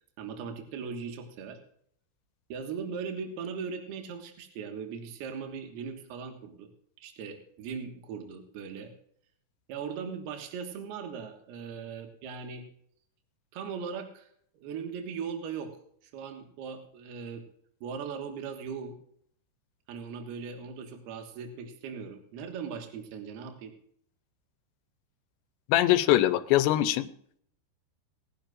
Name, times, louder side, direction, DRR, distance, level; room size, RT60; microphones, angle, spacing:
voice 1, 0.2-1.6 2.5-6.7 7.0-8.9 9.7-12.6 13.5-14.3 14.6-15.8 16.1-17.4 17.8-19.0 19.9-23.7, right 6 dB, 70° right, 4 dB, 3.3 m, -39 dB
voice 2, 25.7-27.1, left 14 dB, 85° left, 12 dB, 2.9 m, -22 dB
21.5 x 10.5 x 2.5 m, 0.65 s
omnidirectional pair, 5.1 m